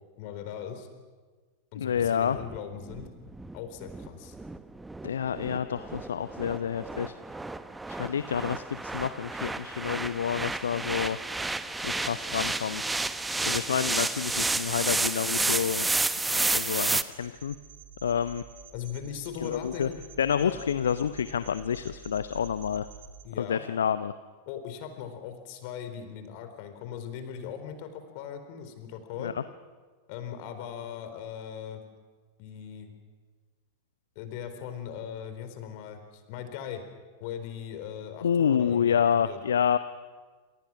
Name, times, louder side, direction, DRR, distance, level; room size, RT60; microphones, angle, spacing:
voice 1, 0.2-0.9 1.7-3.1 3.5-4.3 18.7-20.1 20.4-20.6 23.2-23.6 24.5-29.3 30.1-31.8 32.4-32.9 34.2-36.8 37.2-39.4, left 8 dB, 45° left, 8 dB, 4.2 m, -39 dB
voice 2, 1.8-2.4 5.0-7.2 7.9-8.6 8.9-11.2 11.8-12.9 13.4-15.9 16.3-17.5 18.0-18.4 19.4-19.9 20.2-22.9 23.4-24.1 29.2-29.4 38.2-39.8, left 8 dB, 65° left, 13 dB, 0.7 m, -28 dB
sound 1, 2.0-17.0, right 2 dB, 10° right, 1.1 m, -31 dB
sound 2, 17.1-23.2, right 6 dB, 65° right, 4.7 m, -48 dB
28.5 x 27.5 x 6.3 m, 1.4 s
figure-of-eight pair, 90°, 0 cm